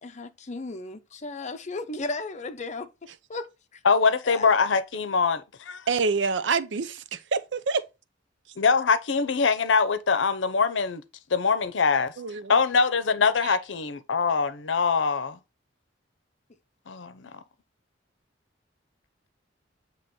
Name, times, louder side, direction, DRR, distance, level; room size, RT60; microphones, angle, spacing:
voice 1, 0.0-2.9 3.3-3.8 4.2-4.5, left 3 dB, 40° left, 0.7 m, -35 dB
voice 2, 3.8-5.8 8.6-11.0 11.3-12.1 12.5-15.4 16.9-17.3, left 5 dB, 90° left, 0.7 m, -23 dB
voice 3, 5.9-7.8 12.2-12.6 13.4-13.6, right 4 dB, 70° right, 0.5 m, -27 dB
7.6 x 3.0 x 4.3 m
head